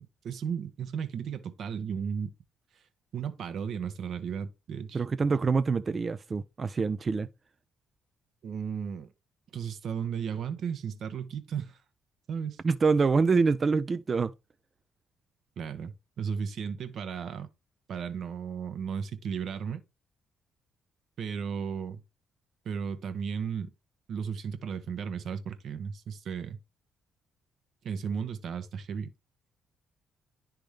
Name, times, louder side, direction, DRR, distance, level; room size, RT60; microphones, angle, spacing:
voice 1, 0.0-2.3 3.1-5.0 8.4-9.1 9.5-11.8 12.3-12.6 15.6-17.5 17.9-19.8 21.2-22.0 22.6-23.7 24.1-26.6 27.8-29.1, right 7 dB, 65° right, 0.9 m, -35 dB
voice 2, 4.9-7.3 12.6-14.3, right 4 dB, 40° right, 0.4 m, -25 dB
10.5 x 3.5 x 3.2 m
supercardioid pair, 60°, 0 cm